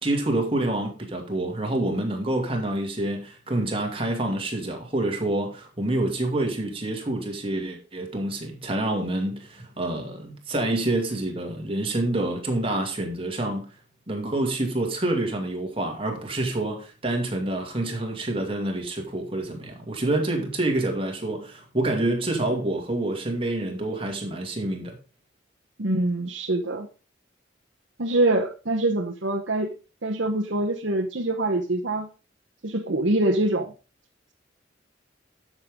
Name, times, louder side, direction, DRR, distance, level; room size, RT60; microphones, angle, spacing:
voice 1, 0.0-13.7 14.1-25.0, right 1 dB, 30° right, 2.4 m, -27 dB
voice 2, 25.8-26.9 28.0-29.7 30.0-32.1 32.6-33.7, right 2 dB, 70° right, 1.1 m, -24 dB
12.0 x 6.7 x 3.7 m
head